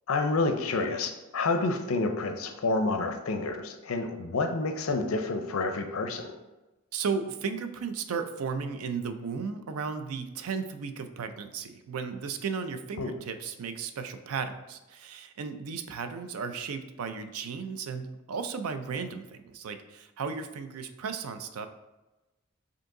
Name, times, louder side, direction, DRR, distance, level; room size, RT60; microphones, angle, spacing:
voice 1, 0.1-6.4 13.0-13.2, left 3 dB, 70° left, 6 dB, 0.5 m, -29 dB
voice 2, 6.9-21.7, right 5 dB, 85° right, 9 dB, 0.4 m, -35 dB
5.1 x 2.8 x 3.7 m, 1.1 s
head